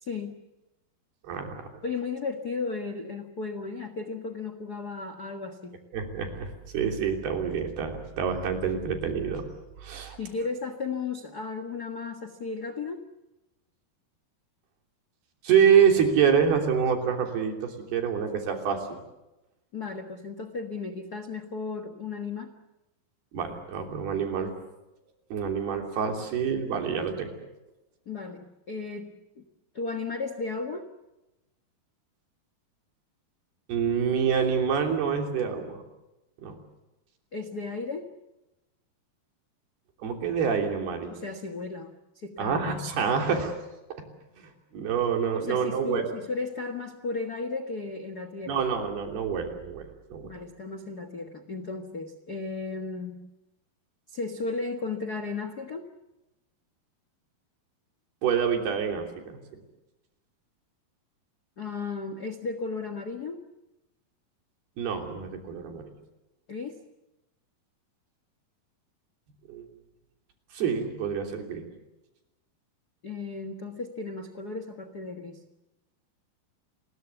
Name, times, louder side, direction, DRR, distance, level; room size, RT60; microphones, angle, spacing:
voice 1, 0.0-0.4 1.8-5.8 10.2-13.0 19.7-22.5 28.0-29.4 29.7-30.9 37.3-38.1 41.1-42.7 45.3-48.6 50.2-53.2 54.1-55.9 61.6-63.4 66.5-66.8 73.0-75.4, left 4 dB, 70° left, 9 dB, 0.9 m, -35 dB
voice 2, 1.2-1.7 5.9-9.4 9.8-10.2 15.4-18.8 23.3-24.5 25.3-27.3 33.7-35.8 36.4-36.6 40.0-41.1 42.4-43.6 44.4-46.0 48.5-49.9 50.1-50.3 58.2-59.4 64.8-65.9 69.5-69.7 70.5-71.7, right 7 dB, 85° right, 3 dB, 5.2 m, -26 dB
30.0 x 21.5 x 7.1 m, 0.97 s
omnidirectional pair, 4.4 m